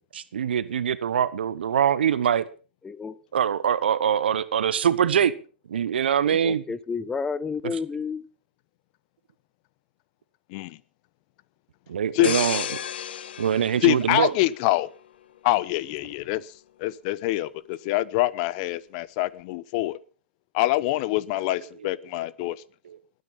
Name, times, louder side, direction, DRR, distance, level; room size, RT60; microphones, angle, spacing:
voice 1, 0.1-2.5 3.3-5.3 5.7-6.6 7.6-7.8 11.9-12.6 13.4-14.3 22.8-23.0, right 8 dB, 70° right, 1.1 m, -23 dB
voice 2, 2.8-3.2 6.3-8.3, left 5 dB, 10° left, 0.8 m, -31 dB
sound 1, 12.2-14.9 15.4-15.6, left 9 dB, 65° left, 1.2 m, -33 dB
voice 3, 13.8-14.9 15.4-16.5 16.8-20.0 20.5-22.6, left 16 dB, 45° left, 0.9 m, -25 dB
20.5 x 9.4 x 5.6 m
hypercardioid pair, 120°, 6 cm